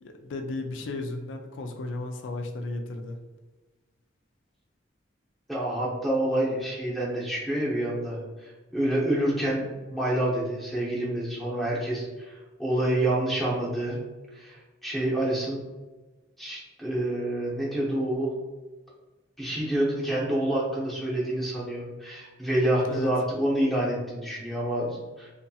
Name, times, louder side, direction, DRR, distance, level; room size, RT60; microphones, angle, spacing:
voice 1, 0.0-3.2 22.8-23.1, left 2 dB, 80° left, 4 dB, 0.3 m, -34 dB
voice 2, 5.5-9.6 9.9-14.0 14.3-15.6 16.4-18.3 19.4-25.3, right 1 dB, ahead, -6 dB, 0.7 m, -28 dB
2.7 x 2.6 x 2.2 m, 1.2 s
head